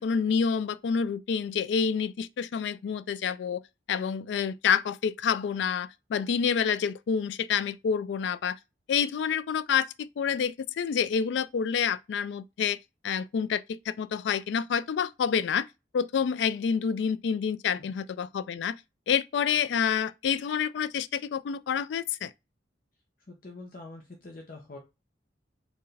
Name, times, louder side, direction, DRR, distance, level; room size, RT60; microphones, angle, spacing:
voice 1, 0.0-3.6 3.9-8.6 8.9-12.8 13.0-15.7 15.9-18.7 19.1-22.3, left 7 dB, 75° left, 0.3 m, -28 dB
voice 2, 23.3-24.8, left 2 dB, 50° left, 0.7 m, -45 dB
4.6 x 2.4 x 3.2 m
head